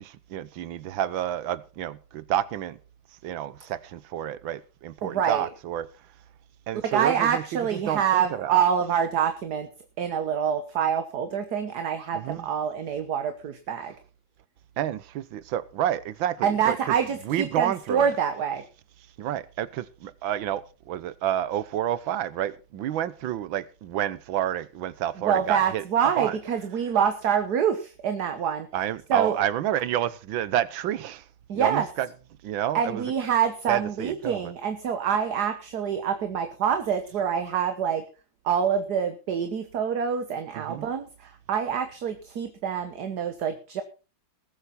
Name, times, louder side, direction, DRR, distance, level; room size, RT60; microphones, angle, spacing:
voice 1, 0.0-2.8 3.2-5.9 6.7-7.4 7.7-8.6 12.1-12.5 14.8-16.8 17.2-18.1 19.2-25.8 26.2-26.4 28.7-31.2 31.5-32.1 32.4-33.0 33.7-34.5 40.5-40.9, right 11 dB, 80° right, 1.6 m, -29 dB
voice 2, 5.0-5.5 6.8-9.7 10.0-13.9 16.4-18.6 25.2-28.7 29.1-29.4 31.5-31.9 32.7-38.1 38.4-43.8, right 8 dB, 60° right, 1.7 m, -26 dB
20.0 x 8.2 x 4.2 m
omnidirectional pair, 2.1 m